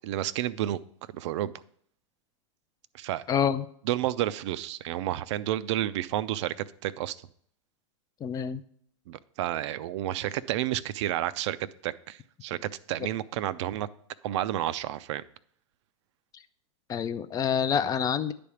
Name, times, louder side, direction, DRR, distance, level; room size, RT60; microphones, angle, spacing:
voice 1, 0.0-0.8 1.1-1.5 2.9-3.2 3.9-7.2 9.1-11.6 11.8-13.9 14.2-15.2, right 13 dB, 60° right, 16 dB, 0.4 m, -30 dB
voice 2, 3.3-3.7 8.2-8.6 16.9-18.3, left 7 dB, 20° left, 12 dB, 0.4 m, -27 dB
10.0 x 3.4 x 7.0 m, 0.63 s
hypercardioid pair, 120°, 17 cm